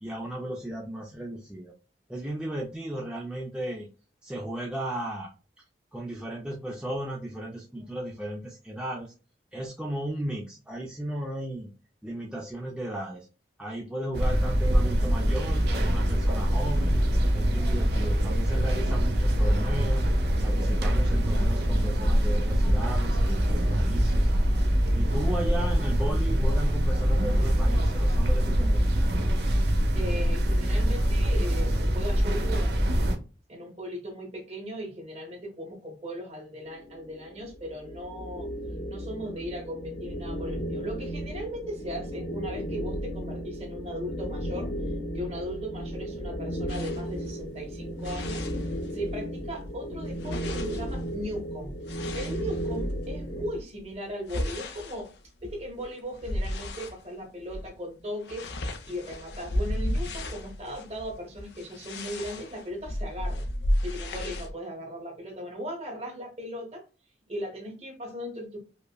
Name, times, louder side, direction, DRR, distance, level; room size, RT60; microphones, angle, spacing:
voice 1, 0.0-1.7 2.1-3.9 4.2-5.3 5.9-9.1 9.5-11.7 12.0-13.3 13.6-17.1 17.3-20.1 20.4-24.3 24.9-29.1, right 1 dB, 5° right, -2 dB, 0.4 m, -35 dB
sound 1, 14.1-33.2, equal, 60° right, 0.7 m, -24 dB
voice 2, 29.9-38.5 38.9-44.7 45.1-51.8 52.1-55.1 55.4-58.5 58.9-63.5 63.8-66.8 67.3-68.6, equal, 35° right, 1 dB, 1.3 m, -38 dB
sound 2, 36.6-53.6, equal, 45° left, 0.9 m, -35 dB
sound 3, 46.7-49.2 49.5-53.1 53.7-57.0 57.4-57.7 58.0-64.5, left 1 dB, 65° left, 0.6 m, -34 dB
5.1 x 2.1 x 2.2 m, 0.34 s
head